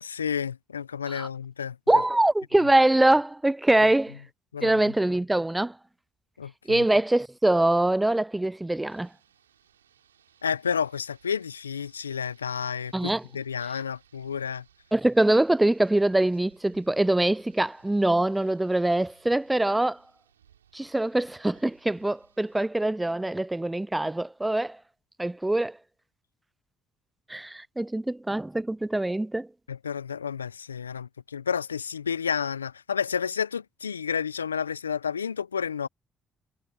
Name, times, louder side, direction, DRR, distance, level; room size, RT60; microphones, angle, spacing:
voice 1, 0.0-1.8 4.5-4.8 6.4-6.8 10.4-14.6 29.7-35.9, left 7 dB, 90° left, 0.8 m, -31 dB
voice 2, 1.9-4.2 4.6-5.7 6.7-9.1 12.9-13.2 14.9-20.0 20.7-24.8 25.2-25.7 27.3-29.5, right 1 dB, 10° right, 0.6 m, -23 dB
Rain, 8.9-22.6, right 9 dB, 85° right, 5.1 m, -63 dB
figure-of-eight pair, 45°, 0 cm